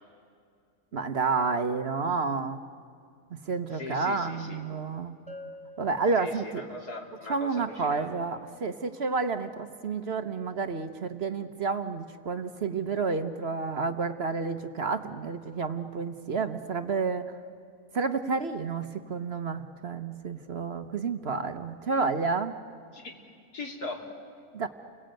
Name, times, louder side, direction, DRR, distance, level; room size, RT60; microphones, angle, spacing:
voice 1, 0.9-2.6 3.5-5.2 5.8-6.6 7.3-17.3 17.9-22.6 24.5-24.7, right 4 dB, 45° right, 9 dB, 1.1 m, -30 dB
voice 2, 3.7-4.6 6.2-8.1 22.9-23.1 23.5-24.0, left 3 dB, 90° left, 2 dB, 3.4 m, -39 dB
Bell, 5.3-6.9, left 1 dB, 5° left, 3.1 m, -47 dB
29.5 x 21.0 x 9.0 m, 2.3 s
omnidirectional pair, 1.6 m